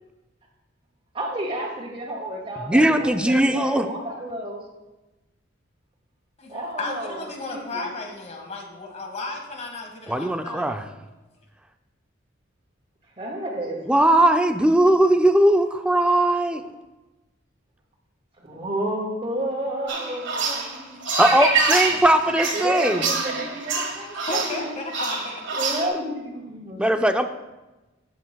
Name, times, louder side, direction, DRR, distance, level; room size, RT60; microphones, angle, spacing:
voice 1, 1.1-4.6 6.5-7.2 7.5-7.9 13.2-13.8 18.4-20.8 22.5-24.8 25.1-25.2 25.5-26.8, right 1 dB, 30° right, -2 dB, 2.2 m, -31 dB
voice 2, 2.6-3.9 10.1-10.8 13.9-16.7 21.2-23.1 26.8-27.3, right 1 dB, 5° right, 6 dB, 0.4 m, -19 dB
voice 3, 6.4-10.8 20.6-22.1 23.0-23.1 23.7-23.9 24.1-25.5, left 3 dB, 35° left, 2 dB, 1.6 m, -35 dB
sound 1, 19.9-25.9, right 4 dB, 65° right, 1.7 m, -26 dB
13.5 x 8.1 x 2.3 m, 1.1 s
head